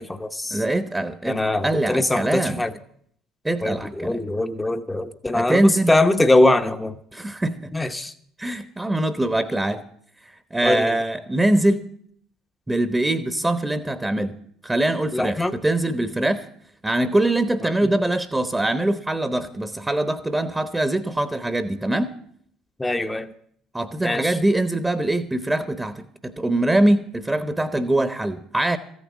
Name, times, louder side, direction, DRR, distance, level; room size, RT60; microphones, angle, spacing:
voice 1, 0.0-0.6 1.2-2.7 3.6-7.0 7.7-8.1 10.6-11.0 15.1-15.6 17.8-17.9 22.8-23.3 24.0-24.4, left 2 dB, 15° left, 7 dB, 0.9 m, -22 dB
voice 2, 0.5-2.6 3.4-4.2 5.3-5.9 7.1-7.7 8.4-9.8 10.2-11.9 12.7-14.4 14.6-16.5 16.8-22.2 23.7-28.8, right 1 dB, 15° right, 11 dB, 1.0 m, -23 dB
14.5 x 9.5 x 7.3 m, 0.65 s
figure-of-eight pair, 55°, 0 cm